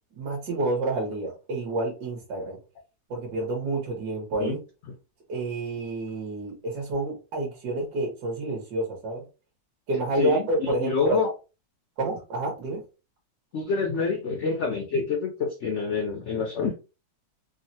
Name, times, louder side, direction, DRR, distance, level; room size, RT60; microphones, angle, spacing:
voice 1, 0.1-2.6 3.1-4.6 5.3-9.2 9.9-11.3 12.0-12.8, right 2 dB, 65° right, 1.5 m, -29 dB
voice 2, 10.2-11.3 13.5-16.7, left 5 dB, 90° left, 0.6 m, -27 dB
3.6 x 2.0 x 2.6 m
omnidirectional pair, 1.9 m